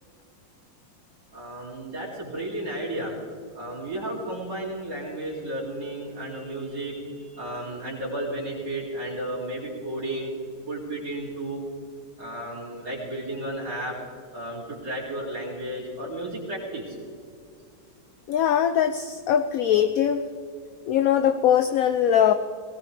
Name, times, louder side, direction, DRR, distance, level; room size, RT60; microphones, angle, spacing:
voice 1, 1.3-3.1 3.5-10.3 10.7-11.6 12.2-13.9 14.3-17.0, right 1 dB, 75° right, -6 dB, 3.5 m, -33 dB
voice 2, 18.3-20.3 20.9-22.3, left 9 dB, 65° left, 9 dB, 0.9 m, -21 dB
19.5 x 18.0 x 3.3 m, 2.3 s
omnidirectional pair, 1.9 m